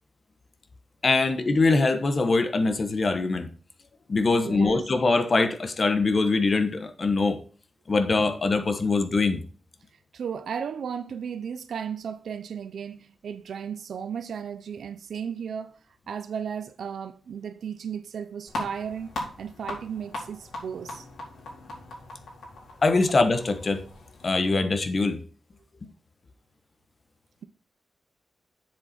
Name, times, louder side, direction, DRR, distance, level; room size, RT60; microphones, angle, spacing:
voice 1, 1.0-3.5 4.1-7.4 7.9-9.4 22.8-23.9 24.2-25.2, left 3 dB, 40° left, 1.1 m, -23 dB
voice 2, 4.4-4.8 10.1-15.8 16.1-21.1, right 7 dB, 85° right, 0.7 m, -35 dB
sound 1, 18.5-24.6, left 2 dB, 85° left, 4.3 m, -39 dB
7.7 x 7.1 x 4.3 m
wide cardioid pair, 120°, 0 cm